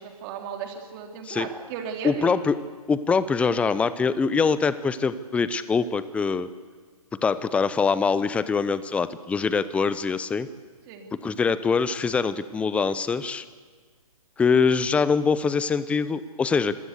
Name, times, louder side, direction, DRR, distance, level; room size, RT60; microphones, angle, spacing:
voice 1, 0.0-2.3 10.9-11.1, right 7 dB, 35° right, 4 dB, 3.4 m, -35 dB
voice 2, 2.0-2.6 2.9-6.5 7.1-10.5 11.1-13.4 14.4-16.8, left 5 dB, 5° left, 15 dB, 0.6 m, -23 dB
26.0 x 16.0 x 8.1 m, 1.5 s
hypercardioid pair, 135°, 19 cm